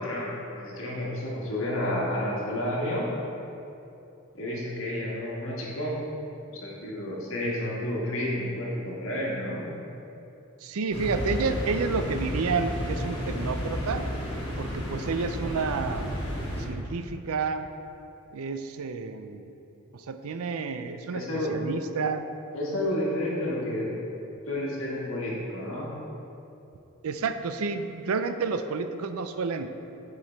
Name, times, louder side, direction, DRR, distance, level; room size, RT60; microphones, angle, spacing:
voice 1, 0.0-3.1 4.3-6.0 6.5-9.7 21.1-21.5 22.5-23.9 24.5-25.9, left 1 dB, 60° left, -5 dB, 1.7 m, -30 dB
voice 2, 10.6-14.1 14.6-16.1 16.6-17.7 18.3-19.5 19.9-21.2 21.5-22.2 27.0-29.7, right 4 dB, 75° right, 9 dB, 0.4 m, -30 dB
sound 1, 10.9-16.6, equal, 25° left, 1.7 m, -32 dB
8.6 x 4.7 x 4.5 m, 2.9 s
head